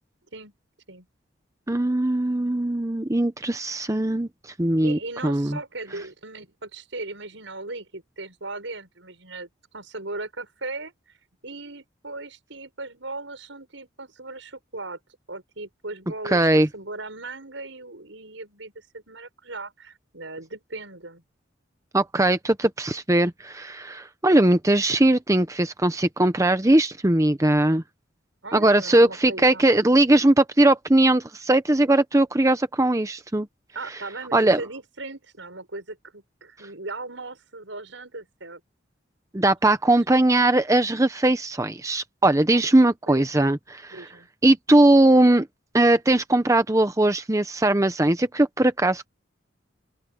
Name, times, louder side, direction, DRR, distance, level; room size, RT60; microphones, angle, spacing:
voice 1, 1.7-4.3 4.6-5.6 16.2-16.7 21.9-27.8 28.5-33.5 34.3-34.6 39.3-44.1 44.4-45.5 45.7-49.1, right 1 dB, 15° right, 0.8 m, -20 dB
voice 2, 4.8-10.9 11.4-15.0 15.3-21.2 28.4-30.0 33.7-38.6 39.8-39.9 42.5-42.8 43.1-43.2 43.9-44.3, right 2 dB, 80° right, 6.5 m, -38 dB
open air
head